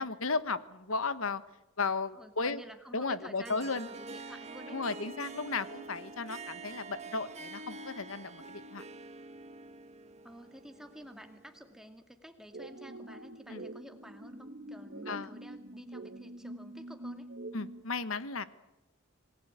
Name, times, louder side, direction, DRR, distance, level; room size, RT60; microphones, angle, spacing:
voice 1, 0.0-1.4 1.8-2.6 2.9-3.9 4.7-8.8 13.5-13.6 15.1-15.3 17.5-18.4, left 4 dB, 80° left, 13 dB, 1.4 m, -34 dB
voice 2, 2.1-5.0 10.2-17.3, equal, ahead, 5 dB, 2.3 m, -51 dB
Harp, 3.4-11.9, right 3 dB, 35° right, 1.5 m, -46 dB
sound 1, 12.5-17.8, right 1 dB, 50° right, 1.4 m, -45 dB
27.0 x 19.5 x 9.0 m, 0.94 s
head